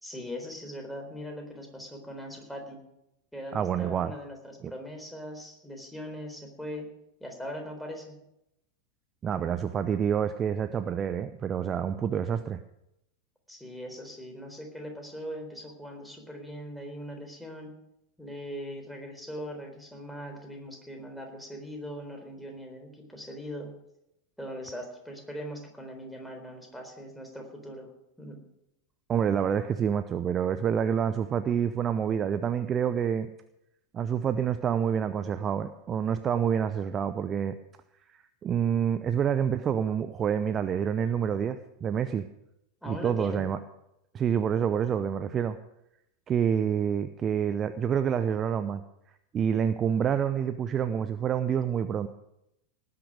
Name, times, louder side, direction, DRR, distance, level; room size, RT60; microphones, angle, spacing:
voice 1, 0.0-2.8 3.3-6.9 7.2-8.2 13.5-17.8 18.2-23.8 24.4-27.9 28.2-28.4 42.8-43.5, equal, ahead, 2 dB, 4.0 m, -40 dB
voice 2, 3.5-4.1 4.6-4.7 9.2-12.6 29.1-33.3 33.9-37.5 38.4-42.2 42.8-43.6 44.1-45.6 46.3-48.8 49.3-52.1, right 8 dB, 25° right, 12 dB, 0.7 m, -27 dB
18.5 x 9.7 x 6.4 m, 0.84 s
figure-of-eight pair, 90°, 0 cm